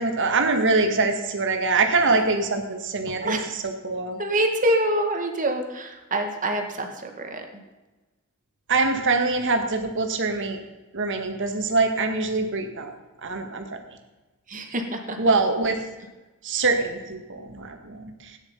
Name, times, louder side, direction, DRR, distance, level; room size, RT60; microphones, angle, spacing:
voice 1, 0.0-4.2 8.7-10.6 10.9-12.9 13.2-13.8 15.2-15.8 16.4-18.4, right 3 dB, 55° right, 4 dB, 2.0 m, -24 dB
voice 2, 4.2-7.5 14.5-15.2, right 1 dB, 35° right, 4 dB, 2.0 m, -26 dB
17.0 x 9.9 x 5.6 m, 1.1 s
head